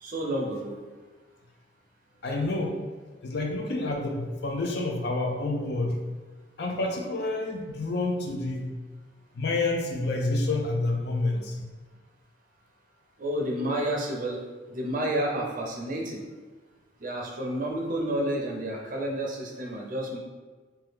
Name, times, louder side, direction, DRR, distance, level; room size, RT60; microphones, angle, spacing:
voice 1, 0.0-0.8 13.2-14.4 14.7-16.2 17.0-20.2, right 1 dB, 45° right, 0 dB, 0.5 m, -30 dB
voice 2, 2.2-2.8 3.2-6.0 6.6-8.7 9.3-11.6, left 2 dB, 60° left, 1 dB, 0.5 m, -28 dB
2.9 x 2.2 x 3.4 m, 1.3 s
head